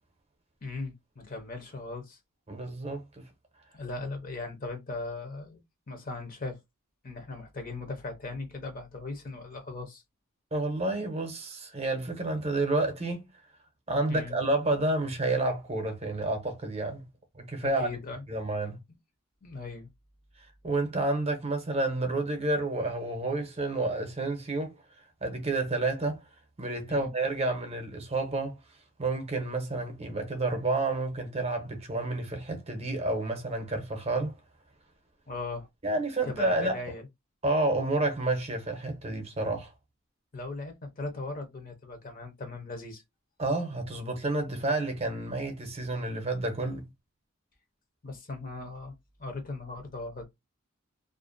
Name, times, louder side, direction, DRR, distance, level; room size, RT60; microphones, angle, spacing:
voice 1, 0.6-2.2 3.7-5.6 5.9-6.6 7.0-10.0 14.1-14.4 17.6-18.2 19.4-19.9 26.9-27.1 35.3-35.7 36.2-37.1 40.3-43.0 48.0-48.9 49.2-50.3, left 3 dB, 40° left, 0.6 m, -38 dB
voice 2, 2.5-3.3 10.5-13.2 13.9-17.1 17.4-17.9 18.3-18.8 20.6-24.8 25.2-26.2 26.6-28.6 29.0-34.4 35.8-36.8 37.4-39.7 43.4-46.9, right 2 dB, 30° right, 0.7 m, -30 dB
2.5 x 2.1 x 2.5 m
head